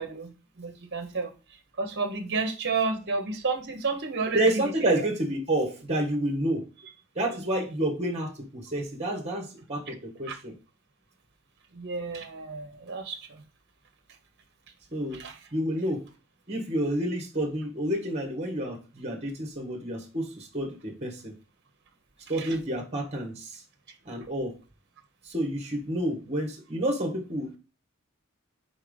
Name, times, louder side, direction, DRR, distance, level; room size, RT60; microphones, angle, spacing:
voice 1, 0.0-1.3 1.8-5.0 7.3-7.4 9.9-10.0 10.3-10.4 11.7-13.4 15.1-15.4 22.4-22.6, right 4 dB, 55° right, 1.2 m, -31 dB
voice 2, 4.3-6.7 7.1-10.5 14.9-15.2 15.5-16.0 16.5-21.3 22.3-23.6 24.0-24.5 25.2-27.5, right 1 dB, 30° right, 1.6 m, -29 dB
4.7 x 4.3 x 5.2 m
head